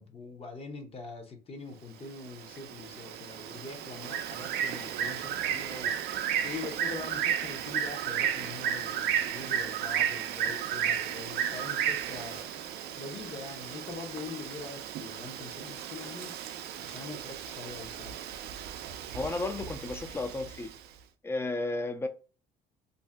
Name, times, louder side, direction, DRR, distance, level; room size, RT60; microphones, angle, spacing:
voice 1, 0.0-6.0 6.4-16.4 16.8-18.2, left 4 dB, 35° left, 0.7 m, -43 dB
Bird, 2.0-20.8, right 9 dB, 70° right, 0.4 m, -34 dB
voice 2, 19.1-20.7 21.2-22.1, left 2 dB, 15° left, 0.4 m, -33 dB
2.6 x 2.1 x 3.4 m
cardioid pair, 110°, 17 cm